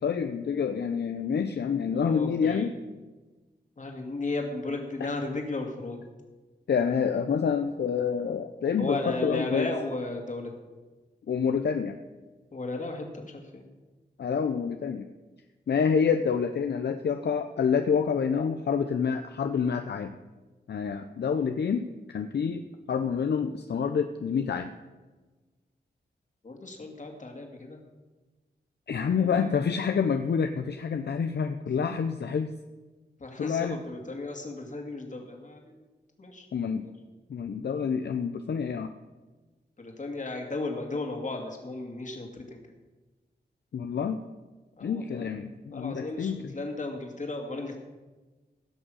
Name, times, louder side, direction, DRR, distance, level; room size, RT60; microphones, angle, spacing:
voice 1, 0.0-2.7 5.0-5.1 6.7-9.7 11.3-12.0 14.2-15.1 15.7-20.2 20.7-22.6 22.9-24.7 28.9-32.5 33.4-33.8 36.5-36.8 37.3-38.9 43.7-44.2 44.8-46.5, left 6 dB, 70° left, 7 dB, 0.6 m, -27 dB
voice 2, 1.8-2.7 3.8-6.0 8.8-10.5 12.5-13.6 26.4-27.8 29.0-29.5 33.2-35.8 36.2-36.5 36.8-36.9 39.8-42.6 44.8-45.3 45.7-47.8, left 2 dB, 45° left, 2 dB, 2.4 m, -35 dB
16.0 x 6.3 x 6.3 m, 1.2 s
cardioid pair, 70°, 18 cm